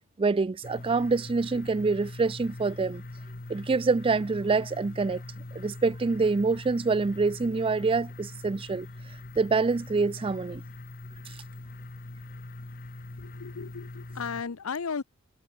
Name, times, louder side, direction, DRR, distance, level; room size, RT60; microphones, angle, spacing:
voice 1, 0.2-3.0 3.5-5.2 5.5-8.9 9.4-10.6, right 4 dB, 25° right, 0.4 m, -26 dB
sound 1, 0.6-14.4, left 2 dB, 40° left, 1.2 m, -42 dB
voice 2, 13.2-15.0, left 5 dB, 70° left, 0.7 m, -35 dB
head